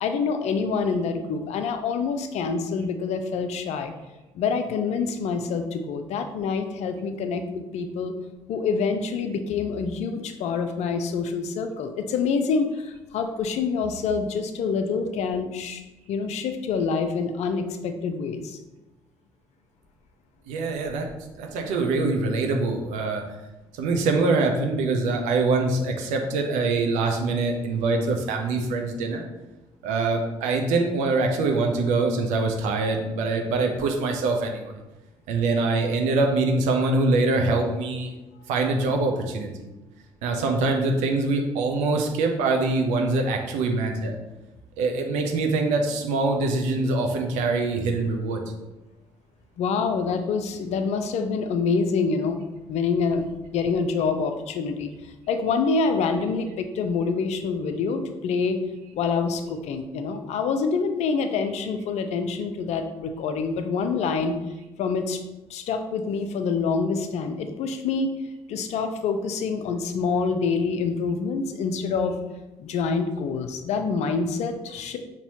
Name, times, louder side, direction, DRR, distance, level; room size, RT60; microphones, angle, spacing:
voice 1, 0.0-3.9 4.3-8.1 8.5-15.8 16.1-18.6 49.6-52.4 52.7-58.6 58.9-64.3 64.8-65.2 65.5-68.1 68.5-72.2 72.6-75.0, left 5 dB, 60° left, 7 dB, 0.5 m, -26 dB
voice 2, 20.5-21.1 21.4-23.2 23.7-29.3 29.8-34.8 35.3-38.1 38.5-39.7 40.2-44.1 44.8-48.4, right 3 dB, 70° right, 3 dB, 0.7 m, -24 dB
5.4 x 2.9 x 2.9 m, 1.0 s
figure-of-eight pair, 45°, 13 cm